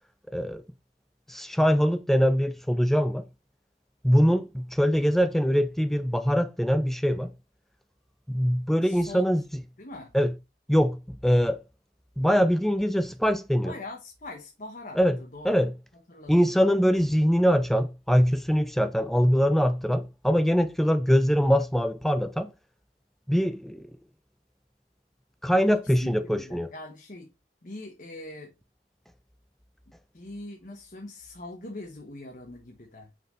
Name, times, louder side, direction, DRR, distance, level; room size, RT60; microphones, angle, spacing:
voice 1, 0.3-0.6 1.3-3.2 4.0-7.3 8.3-9.4 10.1-10.3 10.7-11.6 12.2-13.7 15.0-15.2 15.4-15.7 16.3-22.5 23.3-23.9 25.4-26.7, equal, ahead, 0.4 m, -23 dB
voice 2, 8.8-9.3 9.8-10.1 13.6-15.5 16.1-16.3 25.7-27.3 27.6-28.5 30.1-33.1, left 2 dB, 45° left, 1.2 m, -42 dB
5.7 x 5.5 x 4.1 m
head